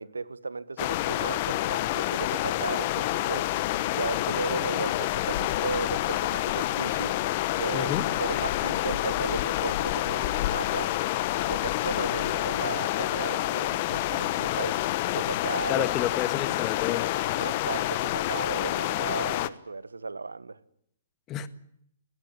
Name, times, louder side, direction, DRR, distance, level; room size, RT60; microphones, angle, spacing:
voice 1, 0.0-3.5 3.9-7.2 7.6-7.9 8.2-11.0 11.5-14.8 15.1-15.9 17.4-20.6, right 3 dB, 85° right, 1.3 m, -35 dB
sound 1, 0.8-19.5, left 15 dB, 45° left, 1.2 m, -28 dB
voice 2, 7.7-8.0 15.7-17.2 21.3-21.5, left 11 dB, 30° left, 1.6 m, -30 dB
20.5 x 18.5 x 10.0 m
figure-of-eight pair, 120°, 0 cm